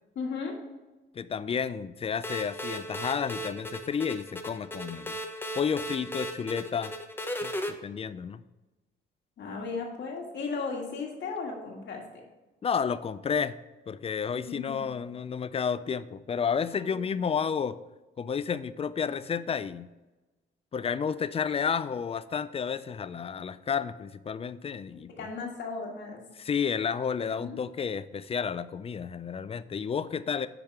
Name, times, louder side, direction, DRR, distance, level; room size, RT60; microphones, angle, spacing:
voice 1, 0.2-0.6 9.4-12.2 14.3-14.8 16.8-17.0 25.1-26.2 27.2-27.6, left 4 dB, 65° left, 0 dB, 1.8 m, -36 dB
voice 2, 1.1-5.2 5.6-6.9 7.4-8.4 12.6-13.5 13.9-17.8 18.2-19.9 20.7-25.3 26.4-30.5, left 6 dB, 30° left, 15 dB, 0.3 m, -31 dB
sound 1, 2.2-7.7, equal, 10° left, 0.7 m, -36 dB
9.5 x 3.5 x 4.6 m, 1.1 s
cardioid pair, 90°, 20 cm